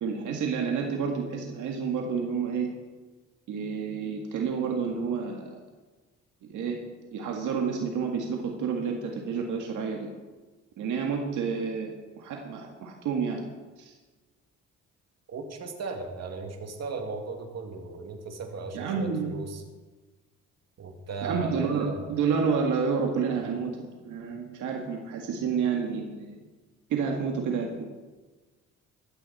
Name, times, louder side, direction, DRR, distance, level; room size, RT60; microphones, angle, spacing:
voice 1, 0.0-2.7 3.5-5.5 6.4-6.8 7.1-10.1 10.8-13.4 13.8-13.9 18.7-19.3 21.2-26.4 26.9-27.9, right 6 dB, 80° right, 1 dB, 1.9 m, -29 dB
voice 2, 15.3-19.6 20.8-22.1, right 4 dB, 55° right, 3 dB, 2.4 m, -36 dB
15.0 x 13.5 x 4.3 m, 1.3 s
cardioid pair, 90°, 30 cm